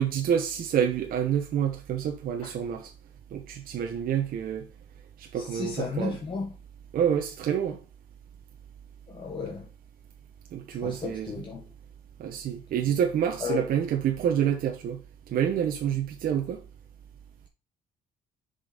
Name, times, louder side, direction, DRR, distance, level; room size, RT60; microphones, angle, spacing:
voice 1, 0.0-2.9 3.3-4.7 5.2-6.2 6.9-7.8 10.5-11.3 12.2-15.0 15.3-16.6, right 9 dB, 60° right, 1.1 m, -27 dB
voice 2, 5.3-6.6 9.1-9.7 10.7-11.7 13.4-13.7, left 5 dB, 30° left, 1.4 m, -34 dB
6.7 x 5.5 x 4.0 m
cardioid pair, 110°, 17 cm